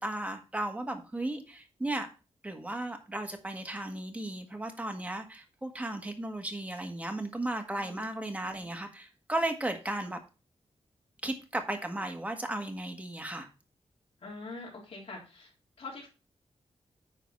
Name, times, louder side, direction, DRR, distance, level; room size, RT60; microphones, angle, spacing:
voice 1, 0.0-2.1 2.4-10.2 11.2-13.5, right 1 dB, 15° right, 4 dB, 1.6 m, -35 dB
voice 2, 7.8-8.1 14.2-15.5 15.8-16.1, left 3 dB, 65° left, -4 dB, 3.4 m, -43 dB
10.0 x 4.0 x 5.3 m, 0.31 s
wide cardioid pair, 115°, 11 cm